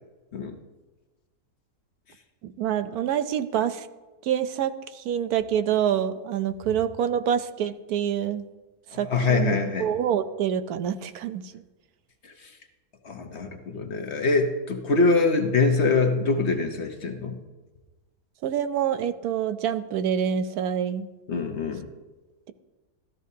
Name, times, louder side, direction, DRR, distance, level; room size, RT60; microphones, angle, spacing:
voice 1, 2.4-3.9 4.2-8.4 8.9-11.6 18.4-21.1, right 9 dB, 75° right, 11 dB, 1.1 m, -26 dB
voice 2, 8.9-9.9 12.2-12.5 13.0-17.4 21.3-21.9, left 3 dB, 50° left, 5 dB, 1.0 m, -24 dB
14.5 x 13.0 x 2.7 m, 1.2 s
omnidirectional pair, 1.7 m